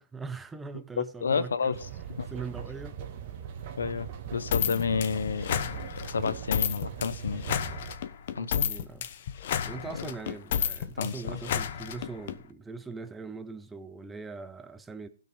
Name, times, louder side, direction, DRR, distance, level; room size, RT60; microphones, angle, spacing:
voice 1, 0.0-1.8 2.3-3.0 8.3-9.1 9.6-15.1, right 4 dB, 10° right, 0.8 m, -41 dB
voice 2, 1.0-1.8 2.1-2.3 3.8-7.4 8.3-8.7 10.0-10.1 11.0-11.4, left 5 dB, 70° left, 1.1 m, -30 dB
sound 1, 1.7-7.9, right 8 dB, 35° right, 1.8 m, -40 dB
sound 2, 4.5-12.4, left 9 dB, 45° left, 1.1 m, -31 dB
16.0 x 5.9 x 5.1 m
hypercardioid pair, 140°, 0 cm